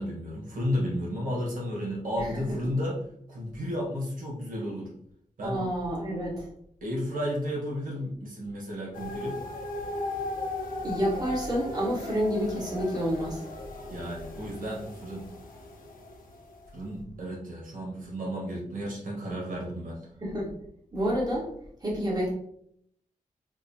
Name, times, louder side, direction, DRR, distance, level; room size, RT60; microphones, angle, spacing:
voice 1, 0.0-3.0 3.3-4.9 5.4-5.6 6.8-9.4 13.9-15.2 16.7-20.0, equal, 80° right, -3 dB, 1.2 m, -33 dB
voice 2, 5.4-6.5 10.8-13.4 20.2-20.5 20.9-21.5 21.8-22.3, equal, 30° right, -5 dB, 1.3 m, -29 dB
sound 1, 8.9-16.8, left 2 dB, 90° left, 0.7 m, -38 dB
5.2 x 2.2 x 2.7 m, 0.68 s
wide cardioid pair, 155°, 14 cm